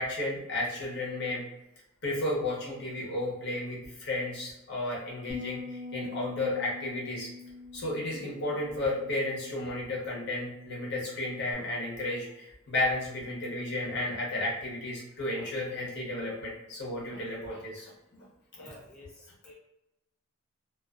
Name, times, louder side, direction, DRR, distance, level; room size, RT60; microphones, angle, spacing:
voice 1, 0.0-1.4 2.0-7.3 7.7-18.2, left 2 dB, 55° left, -4 dB, 0.9 m, -33 dB
Bass guitar, 5.3-11.5, left 3 dB, 85° left, 0.6 m, -45 dB
voice 2, 18.6-19.5, equal, 5° left, -7 dB, 0.5 m, -50 dB
2.4 x 2.4 x 2.4 m, 0.91 s
head